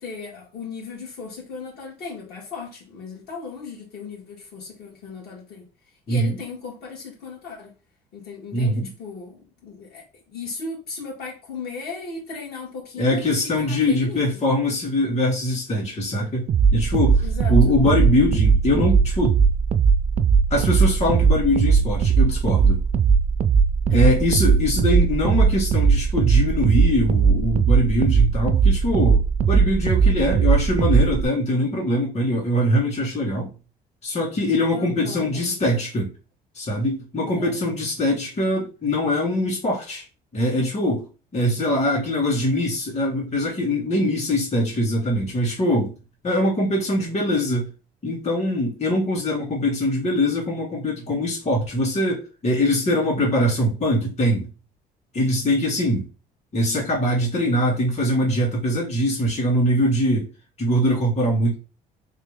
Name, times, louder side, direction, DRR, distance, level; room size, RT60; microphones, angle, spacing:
voice 1, 0.0-5.6 6.1-7.7 8.1-14.4 17.2-17.7 23.9-24.2 24.6-24.7 34.7-35.6 37.2-37.7, left 4 dB, 70° left, 1.8 m, -37 dB
voice 2, 6.1-6.4 8.5-8.9 13.0-19.4 20.5-22.8 23.9-33.5 34.0-36.1 36.6-40.0 40.3-41.1 41.3-45.9 46.2-47.7 48.0-54.5 55.1-56.1 56.5-60.3 60.6-61.5, left 1 dB, 40° left, 1.9 m, -22 dB
sound 1, 16.5-31.3, right 6 dB, 45° right, 0.4 m, -19 dB
3.3 x 3.0 x 3.6 m
cardioid pair, 110°, 17 cm